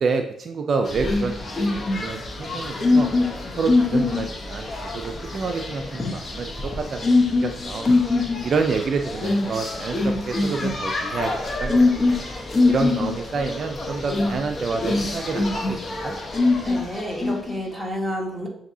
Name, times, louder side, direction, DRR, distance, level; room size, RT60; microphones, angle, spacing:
voice 1, 0.0-3.1 3.6-7.1 7.4-7.8 8.4-11.3 11.6-11.8 12.7-15.8 16.0-16.2, right 4 dB, 55° right, 4 dB, 0.4 m, -28 dB
sound 1, 0.9-17.6, left 3 dB, 35° left, 0.9 m, -24 dB
voice 2, 16.6-18.5, equal, 5° right, -3 dB, 1.5 m, -30 dB
7.0 x 2.6 x 2.7 m, 0.70 s
cardioid pair, 75°, 0 cm